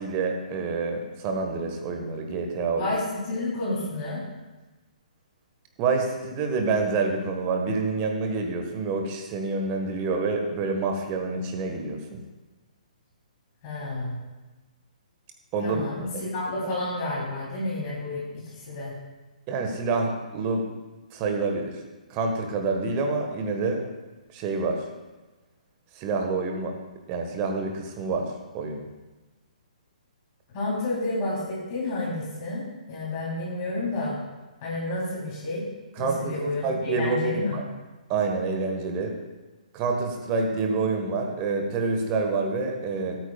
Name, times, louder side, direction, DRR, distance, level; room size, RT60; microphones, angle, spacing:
voice 1, 0.0-2.9 5.8-12.2 15.5-16.1 19.5-20.6 21.1-21.8 22.1-23.8 24.3-24.8 25.9-26.7 27.1-28.3 28.5-28.9 36.0-37.6 38.1-39.1 39.7-43.2, right 4 dB, 25° right, 3 dB, 1.5 m, -27 dB
voice 2, 2.7-4.2 13.6-14.2 15.6-18.9 30.5-32.6 32.9-34.2 34.6-35.7 36.0-37.6, left 2 dB, 30° left, -6 dB, 3.5 m, -30 dB
18.0 x 9.1 x 2.4 m, 1.2 s
figure-of-eight pair, 125°, 4 cm